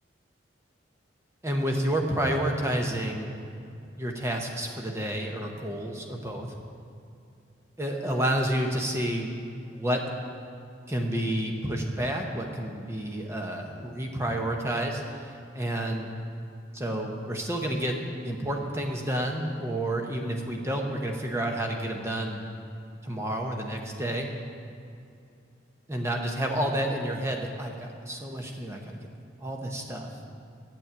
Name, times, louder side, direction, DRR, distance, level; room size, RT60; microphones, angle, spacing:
voice 1, 1.4-3.3 4.0-6.5 7.8-9.3 9.6-10.0 10.9-16.1 16.7-22.4 23.0-24.3 25.9-29.0 29.4-30.1, right 1 dB, 15° right, 1 dB, 0.9 m, -30 dB
8.5 x 7.5 x 8.3 m, 2.6 s
head